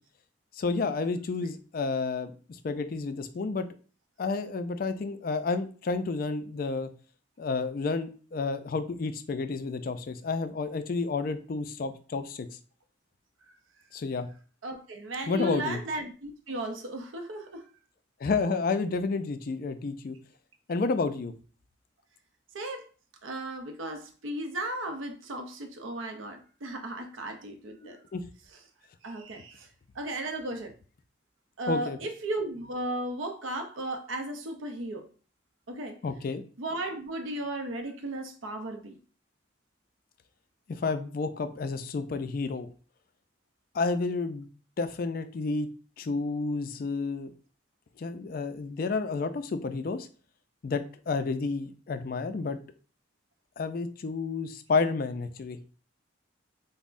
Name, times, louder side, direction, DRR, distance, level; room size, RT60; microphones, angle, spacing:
voice 1, 0.5-3.7 4.2-6.9 7.4-12.5 13.9-14.3 15.3-15.8 18.2-20.2 20.7-21.3 27.8-28.2 31.7-32.0 36.0-36.4 40.7-42.7 43.7-44.5 44.8-45.7 46.0-47.3 48.0-50.1 50.6-52.6 53.6-55.6, left 4 dB, 45° left, 0.3 m, -30 dB
voice 2, 14.6-17.7 22.5-22.9 23.2-28.0 29.0-29.7 29.9-30.7 31.6-35.1 35.7-36.0 36.6-39.0, right 1 dB, 85° right, 0.6 m, -35 dB
5.3 x 2.0 x 2.5 m
head